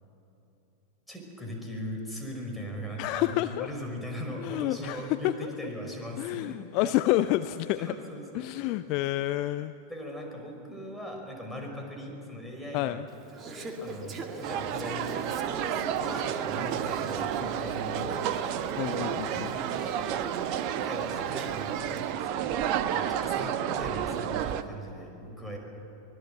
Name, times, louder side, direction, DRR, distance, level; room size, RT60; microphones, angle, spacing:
voice 1, 1.1-6.9 7.8-8.7 9.9-13.0 13.8-15.2 15.9-18.3 19.3-20.2 20.7-25.6, equal, 5° left, 1 dB, 5.5 m, -39 dB
voice 2, 3.0-3.7 4.4-5.5 6.2-7.9 8.3-9.7 12.7-13.0 18.8-19.5, left 15 dB, 45° left, 13 dB, 0.5 m, -29 dB
Conversation / Chatter, 13.1-22.0, right 2 dB, 25° right, 2.4 m, -41 dB
sound 1, 14.4-24.6, right 10 dB, 45° right, 1.1 m, -31 dB
24.5 x 21.0 x 7.8 m, 3.0 s
figure-of-eight pair, 90°, 0 cm